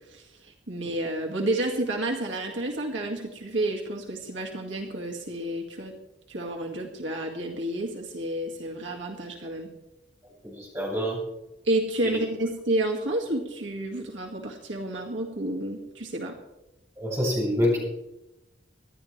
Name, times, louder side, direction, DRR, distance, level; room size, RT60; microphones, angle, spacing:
voice 1, 0.1-5.9 6.3-9.7 11.6-16.4, right 1 dB, 85° right, 0 dB, 2.2 m, -30 dB
voice 2, 10.4-11.2 12.1-12.2 17.0-17.8, equal, 15° right, -5 dB, 7.2 m, -26 dB
26.0 x 11.0 x 3.4 m, 0.93 s
head